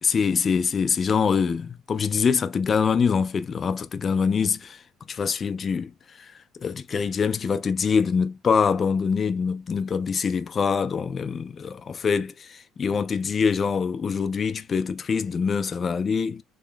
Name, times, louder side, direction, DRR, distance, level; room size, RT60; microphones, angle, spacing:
voice 1, 0.0-16.4, left 6 dB, 35° left, 0.3 m, -24 dB
3.8 x 3.0 x 2.2 m
cardioid pair, 115°, 0 cm